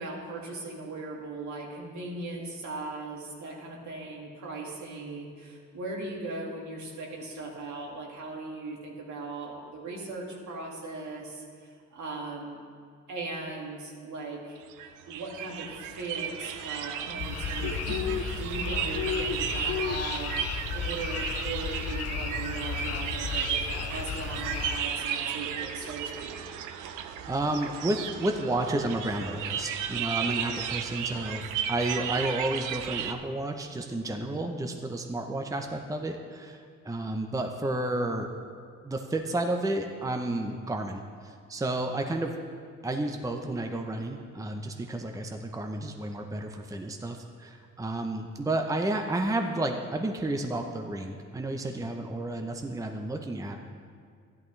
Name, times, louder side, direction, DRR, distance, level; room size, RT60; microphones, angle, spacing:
voice 1, 0.0-12.6 13.1-14.6 15.1-26.4, right 3 dB, 70° right, -2 dB, 2.2 m, -38 dB
sound 1, 14.6-33.1, right 8 dB, 90° right, 0.6 m, -34 dB
sound 2, 17.2-24.8, left 7 dB, 55° left, 0.6 m, -33 dB
voice 2, 27.0-31.4 31.7-38.3 38.8-42.3 42.8-53.6, right 1 dB, 10° right, 4 dB, 0.7 m, -31 dB
13.0 x 11.0 x 3.2 m, 2.1 s
cardioid pair, 90°, 30 cm